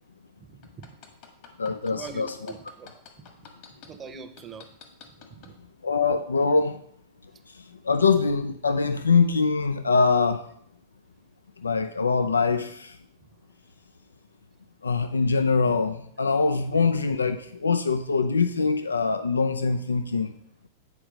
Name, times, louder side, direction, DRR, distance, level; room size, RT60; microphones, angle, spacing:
voice 1, 0.5-0.9 1.8-2.9 3.8-4.7 5.3-5.5 16.7-16.9, right 5 dB, 25° right, 0.8 m, -43 dB
sound 1, 0.6-3.9 4.4-5.5 6.0-6.1, left 7 dB, 50° left, 1.6 m, -47 dB
voice 2, 1.6-2.3 5.8-6.8 7.9-10.4 11.6-12.9 14.8-20.3, left 4 dB, 85° left, 0.4 m, -23 dB
8.8 x 4.7 x 5.0 m
hypercardioid pair, 100°, 0 cm